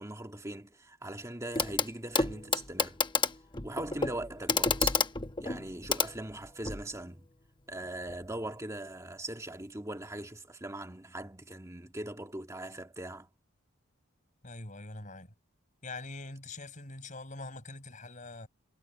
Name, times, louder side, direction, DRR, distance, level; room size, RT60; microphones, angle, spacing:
voice 1, 0.0-3.0 3.6-5.0 5.4-7.3 7.7-13.3, right 1 dB, 15° right, 2.0 m, -40 dB
Clock, 1.6-1.9 2.1-6.8 8.1-8.2, left 4 dB, 25° left, 1.0 m, -30 dB
voice 2, 14.4-15.3 15.8-18.5, left 2 dB, 40° left, 5.6 m, -43 dB
head